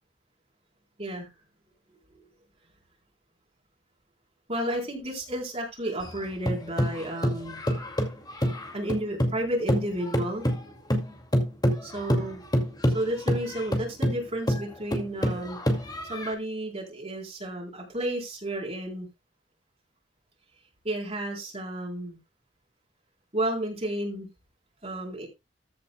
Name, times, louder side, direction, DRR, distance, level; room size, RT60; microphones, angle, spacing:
voice 1, 1.0-1.3 2.1-2.2 4.5-7.6 8.7-10.4 11.8-12.4 12.9-15.6 16.1-19.1 20.8-22.2 23.3-24.3 24.8-25.3, right 1 dB, 35° right, 4.0 m, -32 dB
sound 1, 6.0-9.4 9.7-16.3, equal, 20° left, 2.3 m, -27 dB
14.5 x 8.5 x 2.3 m
head